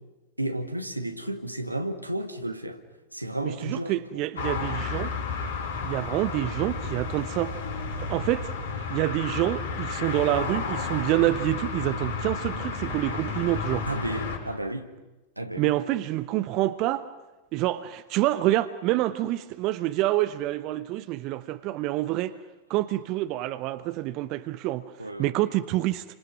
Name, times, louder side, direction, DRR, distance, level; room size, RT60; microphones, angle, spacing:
voice 1, 0.4-2.8 3.1-4.2 13.9-14.9 15.4-15.7 25.0-25.3, right 1 dB, 85° right, 2.0 m, -32 dB
voice 2, 3.4-5.1 5.8-7.6 8.1-8.5 8.9-13.9 15.6-17.1 17.5-22.4 22.7-24.9 25.2-26.0, right 16 dB, 40° right, 0.9 m, -27 dB
sound 1, 4.4-14.4, left 4 dB, 70° left, 5.6 m, -32 dB
30.0 x 26.0 x 6.2 m
figure-of-eight pair, 90°, 0 cm